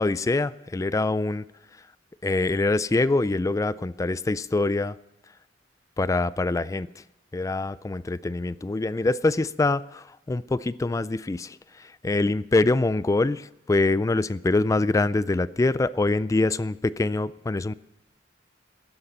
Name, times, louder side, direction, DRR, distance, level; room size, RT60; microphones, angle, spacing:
voice 1, 0.0-1.4 2.2-5.0 6.0-6.9 7.3-17.7, left 2 dB, 20° left, 18 dB, 0.3 m, -24 dB
13.0 x 9.8 x 5.4 m, 0.93 s
head